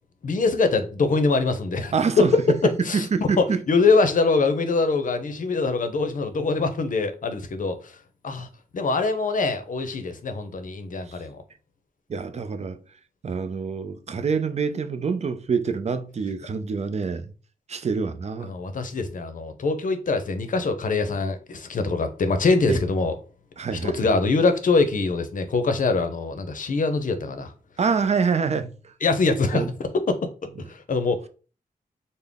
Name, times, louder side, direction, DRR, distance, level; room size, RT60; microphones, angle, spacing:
voice 1, 0.2-2.2 2.8-8.0 8.2-8.5 8.7-11.4 18.4-23.2 23.7-27.5 29.0-30.2 30.7-31.3, left 3 dB, 60° left, 0.6 m, -23 dB
voice 2, 1.9-2.3 2.9-3.6 11.1-11.2 12.1-12.8 13.2-17.3 17.7-18.5 22.7-22.8 23.6-24.1 27.8-28.9 29.5-29.7, right 5 dB, 45° right, 0.4 m, -26 dB
3.7 x 2.1 x 3.5 m
wide cardioid pair, 95°, 16 cm